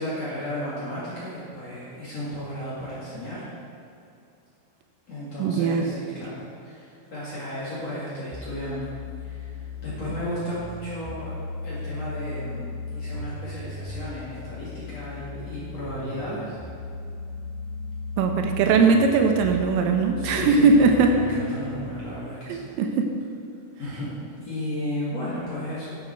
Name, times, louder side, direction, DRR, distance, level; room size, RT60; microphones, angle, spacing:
voice 1, 0.0-3.4 5.1-8.9 9.2-11.3 11.6-12.6 12.9-16.6 20.2-22.7 23.8-24.1 24.4-25.9, left 1 dB, 45° left, -9 dB, 2.4 m, -34 dB
voice 2, 5.4-5.9 18.2-21.1 22.5-23.1, right 4 dB, 85° right, 4 dB, 3.4 m, -20 dB
sound 1, 8.3-22.2, left 3 dB, 15° left, 0.7 m, -37 dB
11.0 x 9.8 x 4.5 m, 2.6 s
omnidirectional pair, 5.8 m